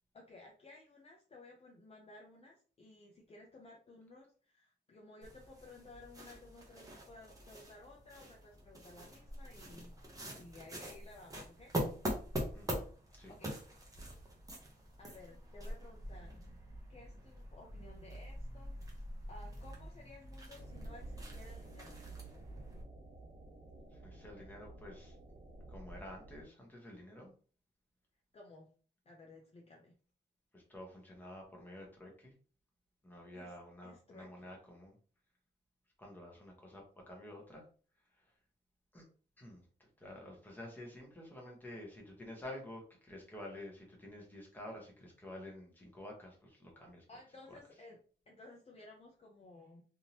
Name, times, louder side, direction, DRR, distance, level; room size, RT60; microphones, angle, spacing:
voice 1, 0.1-9.9 10.3-11.7 13.3-13.5 15.0-16.5 16.9-18.8 19.3-22.0 28.3-28.7 29.1-29.9 33.3-33.5 33.8-34.5 47.1-48.0 48.3-49.8, left 2 dB, 35° left, -1 dB, 0.6 m, -56 dB
sound 1, 5.2-22.8, equal, 20° right, 0.8 m, -44 dB
sound 2, 20.6-26.4, right 1 dB, 45° right, 1.0 m, -52 dB
voice 2, 23.9-25.2 25.7-27.3 30.5-32.3 33.0-34.9 36.0-37.6 38.9-39.0 39.4-39.6 40.0-47.0 47.5-47.6, left 1 dB, 10° left, -1 dB, 1.1 m, -50 dB
3.5 x 2.7 x 2.9 m, 0.41 s
wide cardioid pair, 170°, 18 cm